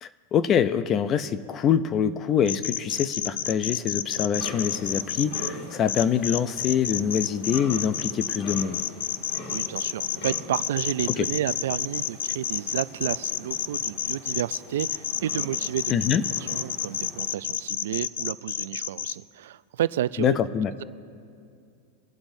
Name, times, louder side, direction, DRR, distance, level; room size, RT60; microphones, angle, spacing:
voice 1, 0.0-8.8 11.2-11.3 15.9-16.2 20.2-20.7, left 8 dB, 25° left, 13 dB, 0.4 m, -25 dB
sound 1, 2.5-5.5 5.9-19.1, left 11 dB, 85° left, 0.4 m, -29 dB
sound 2, 4.4-17.3, left 1 dB, 45° left, 2.1 m, -43 dB
voice 2, 9.5-15.9 16.5-20.4, right 12 dB, 80° right, 17 dB, 0.3 m, -31 dB
24.0 x 11.5 x 2.7 m, 2.4 s
supercardioid pair, 160°, 0 cm